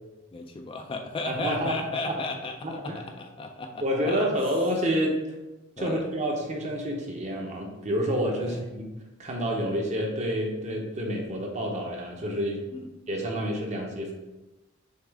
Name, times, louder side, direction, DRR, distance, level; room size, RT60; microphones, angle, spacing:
voice 1, 0.3-4.4 5.8-6.1 8.4-8.6 12.7-12.9, left 3 dB, 25° left, 4 dB, 0.3 m, -35 dB
voice 2, 1.3-2.2 2.6-3.0 3.8-5.2 5.8-8.9 9.2-12.6 13.1-14.1, equal, 35° right, 1 dB, 0.8 m, -28 dB
6.4 x 2.4 x 3.5 m, 1.0 s
head